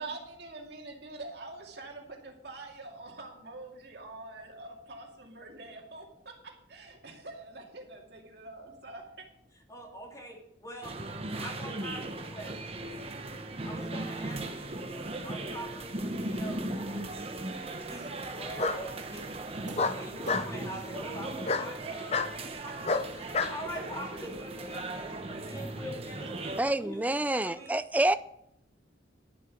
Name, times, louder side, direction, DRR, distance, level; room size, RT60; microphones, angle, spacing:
voice 1, 0.0-9.3, right 2 dB, 60° right, 2 dB, 2.3 m, -45 dB
voice 2, 9.7-11.0 11.4-12.6 13.6-14.9 15.2-19.3 19.9-22.8 23.0-24.9 25.2-27.1 27.3-27.7, equal, 20° left, 0 dB, 2.6 m, -44 dB
sound 1, 10.8-26.6, right 2 dB, 30° right, 1.0 m, -38 dB
Bark, 16.4-17.1 18.6-18.8 19.8-20.5 21.4-21.7 22.1-22.3 22.8-23.6, left 4 dB, 35° left, 0.6 m, -29 dB
sound 2, 18.1-27.1, right 1 dB, 90° right, 2.6 m, -55 dB
voice 3, 26.6-28.2, right 1 dB, 10° right, 14 dB, 0.4 m, -27 dB
11.5 x 7.4 x 6.3 m, 0.75 s
head